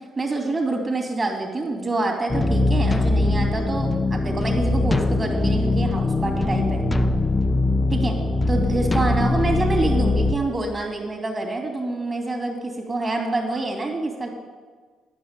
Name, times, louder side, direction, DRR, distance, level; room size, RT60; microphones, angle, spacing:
voice 1, 0.2-6.8 7.9-8.1 8.5-14.3, right 2 dB, 30° right, 1 dB, 2.9 m, -26 dB
sound 1, 2.3-10.4, left 2 dB, 20° left, 0.6 m, -21 dB
11.0 x 6.2 x 9.0 m, 1.5 s
cardioid pair, 90°, 0 cm